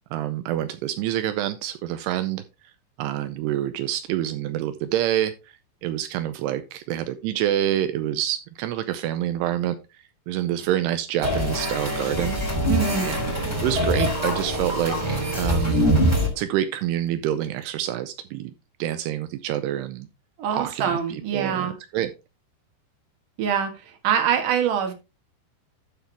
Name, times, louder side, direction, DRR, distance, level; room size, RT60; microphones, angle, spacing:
voice 1, 0.1-2.4 3.0-5.3 5.8-9.8 10.3-12.4 13.0-13.2 13.6-15.9 16.4-18.5 18.8-20.1 20.5-22.1, right 12 dB, 85° right, 10 dB, 2.4 m, -27 dB
sound 1, 11.2-16.3, equal, 5° right, 2.6 m, -24 dB
voice 2, 12.7-13.1 20.4-21.7 23.4-23.7 24.0-24.9, right 8 dB, 55° right, 5 dB, 2.6 m, -24 dB
12.5 x 5.9 x 3.3 m, 0.27 s
omnidirectional pair, 5.5 m